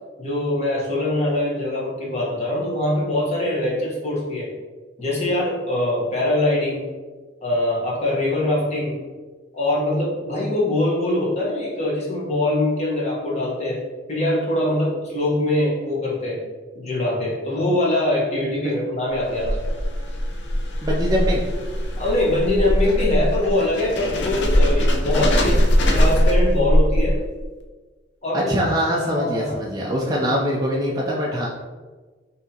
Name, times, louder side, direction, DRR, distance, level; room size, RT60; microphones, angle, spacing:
voice 1, 0.2-4.5 5.0-6.9 7.4-9.0 9.5-13.8 14.1-16.4 16.7-19.7 22.0-25.7 25.9-27.2 28.2-28.5 29.1-29.5, left 1 dB, 35° left, -5 dB, 1.2 m, -23 dB
sound 1, 19.1-27.4, equal, 75° left, 0.6 m, -21 dB
voice 2, 20.8-21.4 28.3-31.5, equal, 20° right, -3 dB, 0.4 m, -23 dB
5.8 x 2.8 x 2.8 m, 1.3 s
head